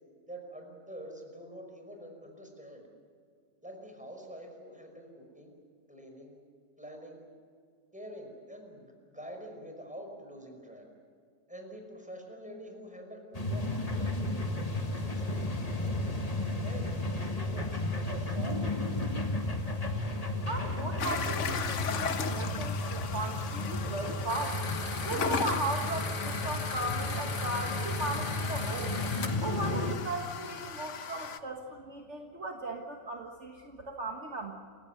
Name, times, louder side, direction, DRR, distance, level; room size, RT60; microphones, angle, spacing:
voice 1, 0.3-2.9 3.6-5.5 5.9-6.4 6.8-7.2 7.9-10.9 11.5-16.2 16.6-18.9, equal, 5° right, 2 dB, 5.5 m, -46 dB
sound 1, 13.3-30.0, left 2 dB, 25° left, 1.9 m, -33 dB
voice 2, 20.5-24.6 25.0-29.0 29.4-34.5, right 2 dB, 45° right, 2 dB, 1.9 m, -37 dB
sound 2, 21.0-31.4, left 6 dB, 50° left, 1.3 m, -38 dB
sound 3, 24.3-29.3, left 4 dB, 85° left, 2.8 m, -39 dB
28.5 x 16.0 x 9.4 m, 2.2 s
omnidirectional pair, 1.7 m